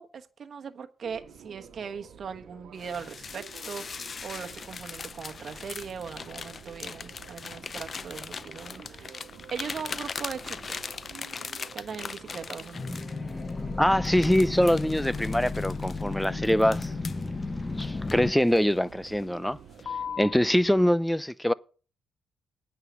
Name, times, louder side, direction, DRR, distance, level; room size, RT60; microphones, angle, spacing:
voice 1, 0.0-3.9 4.2-9.2 9.5-10.9 11.7-13.1, right 6 dB, 55° right, 1.3 m, -39 dB
sound 1, 1.0-20.9, right 7 dB, 75° right, 1.4 m, -50 dB
sound 2, 2.8-13.6 14.0-17.3 17.8-18.7 19.1-19.3 19.8-20.4, left 5 dB, 45° left, 0.6 m, -40 dB
sound 3, 12.7-18.3, left 3 dB, 25° left, 0.9 m, -33 dB
voice 2, 13.8-16.9 17.8-19.6 20.2-21.5, equal, 5° left, 0.6 m, -24 dB
9.1 x 5.8 x 8.1 m
supercardioid pair, 60°, 0 cm